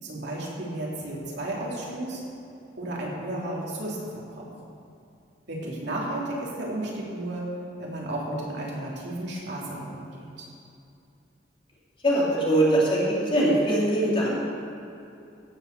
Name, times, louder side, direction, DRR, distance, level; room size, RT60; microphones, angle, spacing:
voice 1, 0.0-2.2 2.8-4.5 5.5-7.4 7.8-10.1, right 1 dB, 65° right, -4 dB, 3.1 m, -33 dB
voice 2, 12.0-14.4, right 1 dB, 30° left, -6 dB, 3.3 m, -22 dB
16.5 x 7.0 x 6.8 m, 2.6 s
head